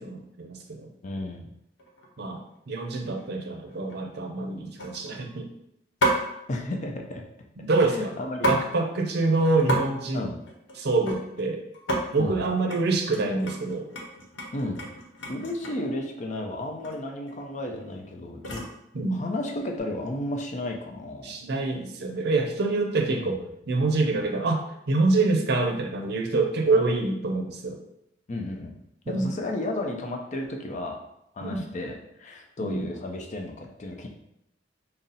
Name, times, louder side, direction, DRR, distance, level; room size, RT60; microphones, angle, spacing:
voice 1, 0.0-0.9 2.2-5.5 7.6-8.2 8.5-10.3 10.8-11.6 12.1-13.9 18.9-19.2 21.2-23.4 23.7-27.8 29.1-29.3 31.4-31.7 32.6-32.9, right 3 dB, 60° right, 3 dB, 0.5 m, -26 dB
voice 2, 1.0-1.5 6.5-7.2 7.9-8.5 10.1-10.3 12.2-12.3 14.5-14.8 15.3-18.6 19.1-21.4 23.1-23.5 28.3-28.8 29.1-31.0 31.3-34.1, left 1 dB, 40° left, 2 dB, 0.5 m, -33 dB
sound 1, 1.8-2.1 2.5-2.8 3.2-3.3 3.6-4.0 4.8-5.3 6.0-6.3 7.7-8.7 9.0-9.1 9.3-9.8 10.1-11.5 11.7-12.0 12.4-12.8 13.1-15.9 16.8-17.0 17.3-18.8 19.5-19.8, right 1 dB, 85° left, 0.8 m, -31 dB
4.0 x 2.0 x 3.9 m, 0.79 s
head